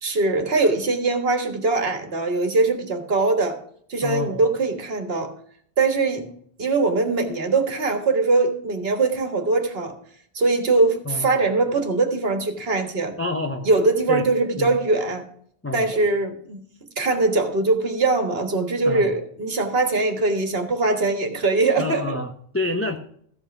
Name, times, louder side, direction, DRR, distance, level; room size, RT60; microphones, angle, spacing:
voice 1, 0.0-3.6 3.9-5.3 5.8-6.2 6.6-9.9 10.3-13.1 13.7-15.3 15.7-16.6 17.0-22.2, right 3 dB, 65° right, 6 dB, 1.7 m, -22 dB
voice 2, 4.0-4.4 11.1-11.3 13.2-13.7 14.1-14.3 14.6-14.7 15.6-15.9 18.9-19.1 21.8-23.0, left 2 dB, 15° left, 4 dB, 0.7 m, -27 dB
14.5 x 5.5 x 5.9 m, 0.63 s
omnidirectional pair, 1.1 m